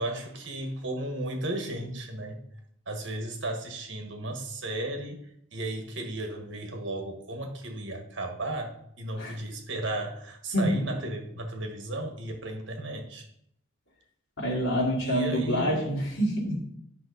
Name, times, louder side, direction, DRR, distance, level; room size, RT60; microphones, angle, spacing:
voice 1, 0.0-2.4 2.9-5.2 5.5-13.3 15.0-16.0, right 1 dB, 60° right, 4 dB, 1.4 m, -34 dB
voice 2, 10.5-10.8 14.4-16.6, equal, 80° left, -3 dB, 2.5 m, -27 dB
9.3 x 5.7 x 4.0 m, 0.71 s
head